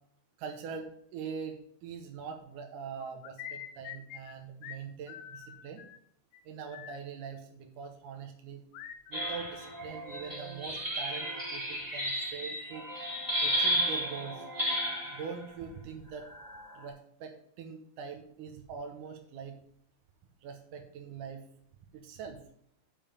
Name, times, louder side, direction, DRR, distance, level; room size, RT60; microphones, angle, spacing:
voice 1, 0.4-5.8 6.5-8.6 9.1-12.9 13.4-14.4 15.1-16.3 16.8-19.6 20.4-21.4 21.9-22.4, right 6 dB, 70° right, 4 dB, 2.0 m, -43 dB
sound 1, 3.0-4.4 4.6-4.8 5.1-6.0 6.3-6.4 6.7-7.0 8.7-10.1 10.4-11.2, left 10 dB, 80° left, 2.1 m, -46 dB
sound 2, 9.1-15.3 16.2-16.8, equal, 5° right, 2.4 m, -33 dB
6.9 x 5.7 x 6.8 m, 0.67 s
omnidirectional pair, 4.7 m